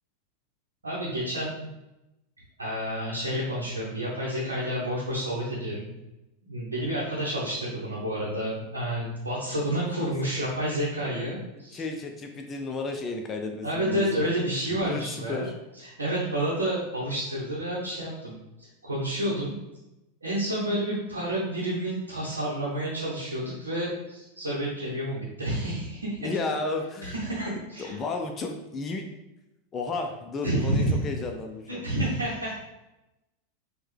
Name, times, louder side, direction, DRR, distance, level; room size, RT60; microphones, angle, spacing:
voice 1, 0.8-1.7 2.6-5.9 6.4-11.8 13.6-15.4 15.7-19.5 20.2-26.3 27.0-28.0 30.4-31.0 31.7-32.5, right 1 dB, 85° right, -7 dB, 0.8 m, -29 dB
voice 2, 10.0-10.4 11.7-14.0 14.8-15.5 26.2-27.2 27.5-29.1 29.7-31.8, left 3 dB, 30° left, 3 dB, 0.4 m, -33 dB
4.4 x 2.2 x 3.3 m, 0.96 s
figure-of-eight pair, 90°, 0 cm